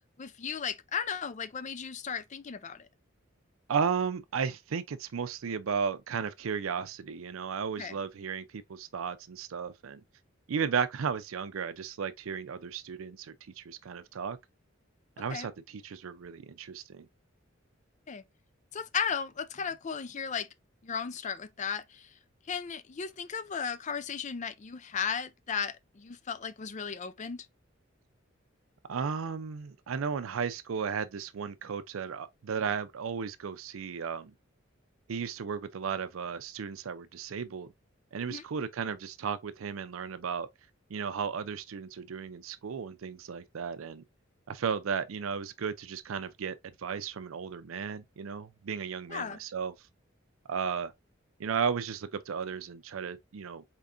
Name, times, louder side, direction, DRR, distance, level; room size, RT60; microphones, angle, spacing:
voice 1, 0.2-2.9 7.8-8.0 15.3-15.5 18.1-18.2 18.7-20.5 20.8-22.1 22.5-27.5 38.3-38.4 49.1-49.4, left 6 dB, 35° left, 0.5 m, -35 dB
voice 2, 3.7-10.0 10.5-14.4 15.2-17.1 28.9-34.3 35.1-37.7 38.1-40.5 40.9-44.0 44.5-49.7 50.5-50.9 51.4-53.6, right 6 dB, 85° right, 0.5 m, -34 dB
4.4 x 3.6 x 2.5 m
head